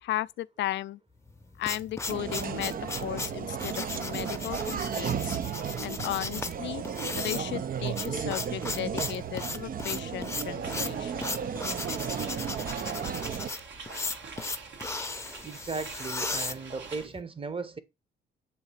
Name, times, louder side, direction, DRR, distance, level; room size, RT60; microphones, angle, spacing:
voice 1, 0.0-1.0 1.6-2.7 3.0-5.4 5.8-6.8 7.1-11.4, left 14 dB, 65° left, 0.4 m, -35 dB
sound 1, 1.3-17.2, left 3 dB, 15° left, 0.7 m, -36 dB
sound 2, 2.1-13.5, right 8 dB, 45° right, 0.5 m, -34 dB
sound 3, 10.4-17.1, right 5 dB, 65° right, 1.5 m, -45 dB
voice 2, 15.4-17.8, right 4 dB, 25° right, 1.0 m, -36 dB
7.9 x 2.8 x 5.6 m
cardioid pair, 90°, 20 cm